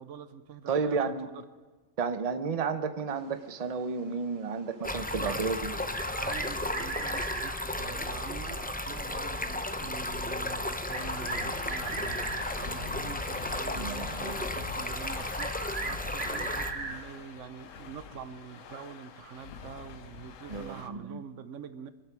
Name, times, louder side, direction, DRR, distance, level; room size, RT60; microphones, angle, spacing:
voice 1, 0.0-1.4 5.2-5.4 6.2-21.9, right 8 dB, 75° right, 12 dB, 1.1 m, -45 dB
voice 2, 0.7-1.3 2.0-5.7 13.7-14.4 20.5-21.2, right 5 dB, 35° right, 9 dB, 0.8 m, -32 dB
Stream, 4.8-16.7, left 1 dB, 10° left, 0.4 m, -34 dB
sound 1, 5.9-7.5 9.3-9.4 10.9-12.8 15.3-17.0, right 3 dB, 55° right, 1.7 m, -38 dB
sound 2, 10.9-20.9, left 7 dB, 85° left, 1.2 m, -45 dB
24.5 x 8.4 x 6.1 m, 1.3 s
omnidirectional pair, 1.3 m